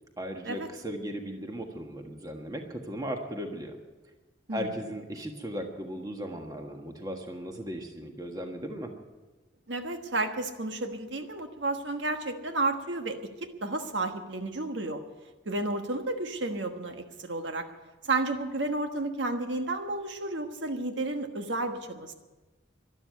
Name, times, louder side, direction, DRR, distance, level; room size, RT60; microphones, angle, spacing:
voice 1, 0.2-3.8 4.5-8.9, equal, 20° right, 3 dB, 1.5 m, -37 dB
voice 2, 9.7-13.3 13.6-15.0 15.4-17.7 18.0-22.1, right 2 dB, 75° right, 6 dB, 1.3 m, -32 dB
12.5 x 12.0 x 9.4 m, 1.2 s
head